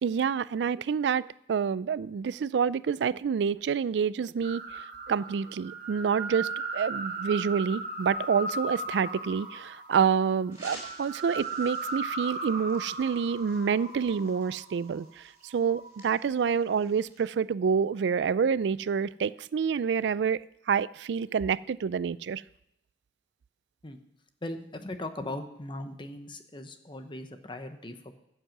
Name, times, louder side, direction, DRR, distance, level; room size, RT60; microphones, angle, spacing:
voice 1, 0.0-4.6 5.1-20.4 20.7-22.4, right 6 dB, 80° right, 0.3 m, -28 dB
sound 1, 4.4-15.0 15.5-16.0, right 3 dB, 55° right, 2.2 m, -37 dB
sound 2, 10.5-17.3, right 1 dB, 15° right, 5.0 m, -52 dB
voice 2, 24.4-28.2, left 1 dB, 30° left, 1.0 m, -39 dB
14.0 x 8.0 x 5.9 m
head